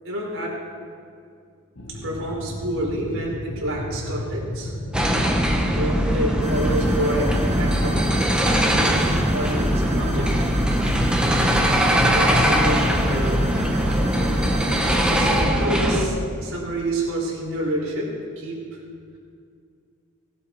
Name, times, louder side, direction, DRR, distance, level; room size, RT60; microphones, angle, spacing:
voice 1, 0.0-0.5 2.0-4.7 5.3-5.4 5.7-8.0 8.4-10.5 12.0-13.4 14.3-14.4 15.1-18.1 18.4-18.6, right 1 dB, 65° right, -4 dB, 4.5 m, -28 dB
sound 1, 1.8-16.3, left 1 dB, 60° left, 1.4 m, -32 dB
sound 2, 4.9-16.1, equal, 5° right, 1.0 m, -21 dB
sound 3, 6.4-15.4, right 3 dB, 30° left, 2.4 m, -39 dB
18.0 x 11.5 x 4.7 m, 2.2 s
head